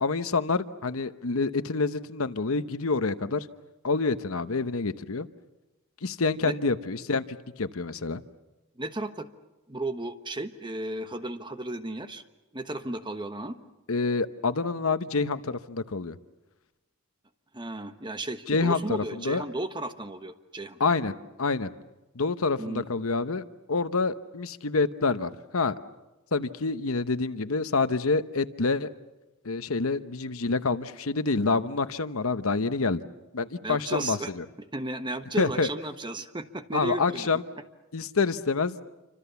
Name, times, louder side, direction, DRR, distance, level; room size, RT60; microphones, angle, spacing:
voice 1, 0.0-3.5 3.8-5.3 6.0-7.2 7.6-8.2 13.9-16.2 18.5-19.4 20.8-21.1 21.4-21.7 22.1-23.4 23.7-25.7 26.3-28.9 29.4-33.0 33.3-34.4 35.4-35.7 36.7-37.4 37.9-38.8, left 4 dB, 70° left, 12 dB, 0.9 m, -27 dB
voice 2, 8.8-9.3 9.7-12.2 12.5-13.6 17.5-20.8 22.6-22.9 33.6-34.3 34.7-37.3, right 2 dB, 20° right, 9 dB, 1.2 m, -34 dB
28.0 x 25.5 x 7.0 m, 1.1 s
head